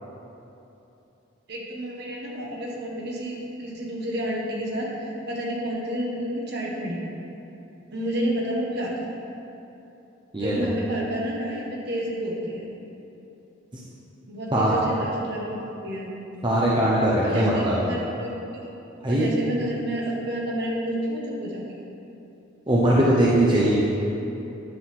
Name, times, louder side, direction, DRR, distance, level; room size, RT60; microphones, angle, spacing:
voice 1, 1.5-7.0 7.9-9.1 10.4-12.6 14.3-16.1 17.2-18.7 19.1-21.6, equal, 55° right, -3 dB, 1.3 m, -30 dB
voice 2, 10.3-10.7 14.5-14.7 16.4-17.8 19.0-19.3 22.7-23.8, right 1 dB, 25° right, -6 dB, 0.8 m, -20 dB
10.5 x 4.0 x 5.9 m, 2.9 s
head